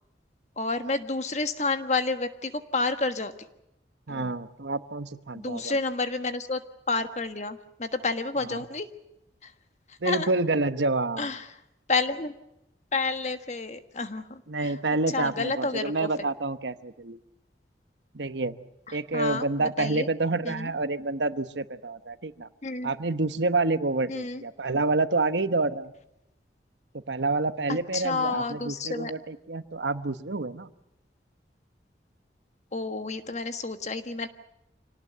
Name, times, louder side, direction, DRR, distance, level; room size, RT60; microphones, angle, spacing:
voice 1, 0.6-3.3 4.1-4.3 5.3-6.6 6.9-8.9 9.4-9.5 10.0-10.3 11.2-11.4 11.9-12.3 12.9-14.7 15.1-16.1 19.1-20.1 20.4-20.7 22.6-22.9 24.1-24.4 27.7-29.1 32.7-34.3, left 3 dB, 40° left, 9 dB, 1.5 m, -30 dB
voice 2, 4.1-5.8 8.4-8.6 10.0-11.3 14.5-17.2 18.1-18.6 18.9-22.5 22.8-25.9 26.9-30.7, right 3 dB, 85° right, 12 dB, 1.1 m, -28 dB
26.5 x 18.5 x 8.0 m, 0.86 s
head